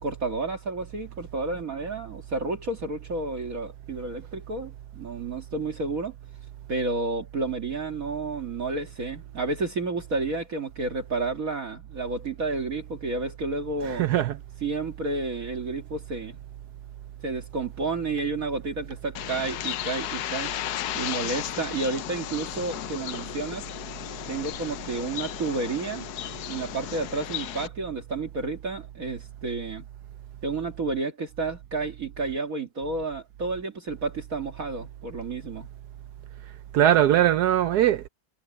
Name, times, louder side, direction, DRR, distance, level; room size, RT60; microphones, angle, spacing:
voice 1, 0.0-6.2 6.7-14.1 14.6-16.4 17.2-20.5 20.9-23.7 24.3-26.1 26.5-29.8 30.4-35.7, right 3 dB, 45° right, 2.2 m, -31 dB
voice 2, 13.8-14.4 36.7-38.1, right 11 dB, 70° right, 1.0 m, -21 dB
Bird, 19.1-27.7, left 12 dB, 70° left, 1.0 m, -34 dB
omnidirectional pair, 2.1 m